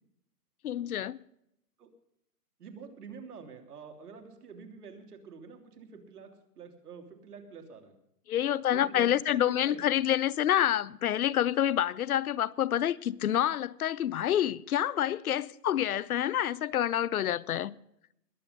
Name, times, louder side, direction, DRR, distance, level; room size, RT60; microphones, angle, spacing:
voice 1, 0.6-1.2 8.3-17.8, left 11 dB, 65° left, 0.7 m, -28 dB
voice 2, 2.6-6.3 6.5-8.0 8.7-9.8, right 5 dB, 70° right, 3.2 m, -47 dB
21.5 x 7.9 x 5.3 m
hypercardioid pair, 175°, 47 cm